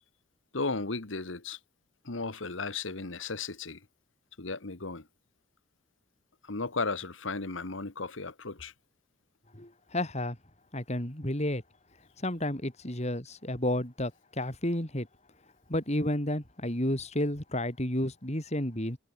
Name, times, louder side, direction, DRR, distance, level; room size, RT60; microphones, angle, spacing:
voice 1, 0.5-1.6 2.0-3.8 4.4-5.1 6.4-8.7, left 3 dB, 75° left, 1.6 m, -35 dB
voice 2, 9.5-10.4 10.7-11.6 12.2-15.1 15.7-19.0, left 1 dB, 35° left, 4.2 m, -31 dB
head